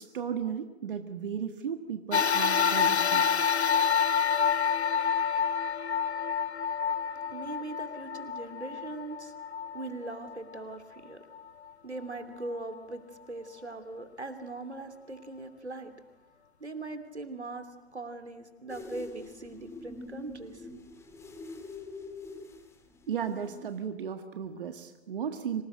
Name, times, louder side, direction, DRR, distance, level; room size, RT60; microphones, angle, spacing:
voice 1, 0.0-3.3 23.1-25.6, right 7 dB, 55° right, 7 dB, 1.7 m, -35 dB
sound 1, 2.1-10.7 11.3-11.4 12.5-12.6, left 7 dB, 80° left, 0.7 m, -28 dB
voice 2, 7.3-9.3 9.7-11.2 11.8-16.1 16.6-20.7, right 2 dB, 85° right, 8 dB, 3.0 m, -40 dB
sound 2, 18.7-23.9, left 3 dB, 10° left, 1.9 m, -45 dB
25.5 x 18.5 x 7.8 m, 1.1 s
figure-of-eight pair, 130°, 33 cm